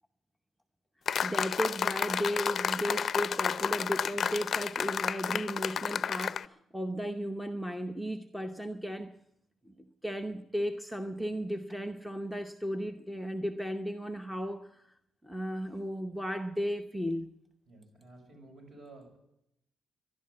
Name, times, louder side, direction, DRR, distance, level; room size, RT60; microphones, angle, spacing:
sound 1, 1.1-6.4, left 7 dB, 55° left, 0.5 m, -31 dB
voice 1, 1.2-9.1 9.6-15.0 15.2-17.3, equal, 5° right, 7 dB, 0.8 m, -35 dB
voice 2, 17.7-19.2, right 2 dB, 45° right, 3 dB, 6.7 m, -52 dB
12.0 x 12.0 x 8.6 m, 0.81 s
cardioid pair, 90°, 0 cm